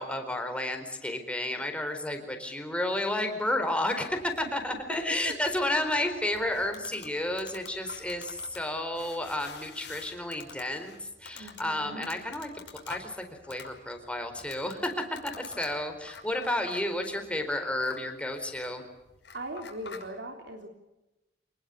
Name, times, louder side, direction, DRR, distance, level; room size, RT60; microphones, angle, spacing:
voice 1, 0.0-12.5 12.9-15.0 15.4-18.8, left 1 dB, 5° left, 5 dB, 4.4 m, -31 dB
sound 1, 4.1-20.1, left 5 dB, 80° left, 5.5 m, -49 dB
voice 2, 4.7-5.3 11.4-12.1 19.3-20.7, right 1 dB, 75° right, 3 dB, 3.5 m, -40 dB
27.5 x 20.0 x 8.3 m, 0.98 s
head